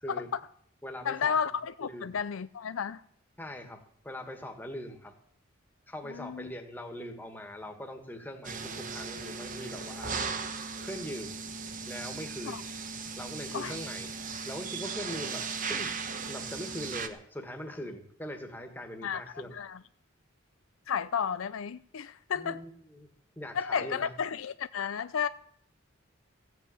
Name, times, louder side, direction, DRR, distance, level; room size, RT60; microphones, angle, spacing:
voice 1, 0.1-0.4 1.0-3.0 6.1-6.5 12.5-12.6 13.5-13.8 19.0-19.2 19.5-19.8 20.9-22.6 23.5-25.3, left 7 dB, 85° left, 0.5 m, -32 dB
voice 2, 0.8-1.4 1.8-2.1 3.4-5.1 5.9-10.2 10.8-11.3 11.9-12.6 13.2-14.1 14.4-16.0 16.3-19.6 22.3-23.1 23.3-24.1, equal, 10° left, 1.7 m, -41 dB
sound 1, 8.4-17.1, right 5 dB, 40° right, 1.0 m, -37 dB
15.5 x 7.8 x 8.4 m
head